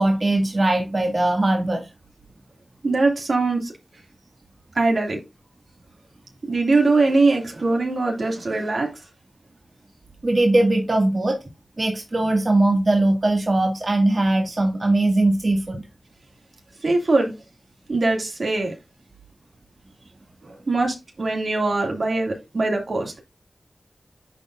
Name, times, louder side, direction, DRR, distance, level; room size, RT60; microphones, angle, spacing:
voice 1, 0.0-1.9 10.2-11.4 11.8-15.8, right 2 dB, 50° right, 2.0 m, -20 dB
voice 2, 2.8-3.7 4.7-5.2 6.5-8.9 16.8-17.3 17.9-18.7 20.4-23.2, right 3 dB, 70° right, 2.3 m, -22 dB
10.0 x 4.6 x 2.5 m
cardioid pair, 40°, 0 cm